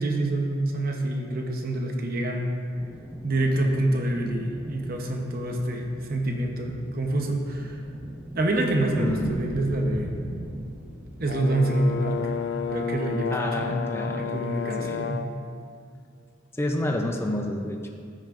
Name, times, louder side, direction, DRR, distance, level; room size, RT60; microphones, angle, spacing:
voice 1, 0.0-2.5 3.2-7.8 8.3-10.2 11.2-12.3 12.7-13.7 14.2-15.2 16.9-17.0, right 1 dB, 50° right, 2 dB, 0.8 m, -26 dB
sound 1, 2.7-13.2, equal, 10° right, 1.0 m, -41 dB
voice 2, 9.0-9.4 13.3-14.4 14.8-15.2 16.6-17.9, left 1 dB, 15° left, 2 dB, 0.5 m, -29 dB
Brass instrument, 11.3-15.4, left 6 dB, 65° left, 0.4 m, -31 dB
14.5 x 6.2 x 2.5 m, 2.2 s
head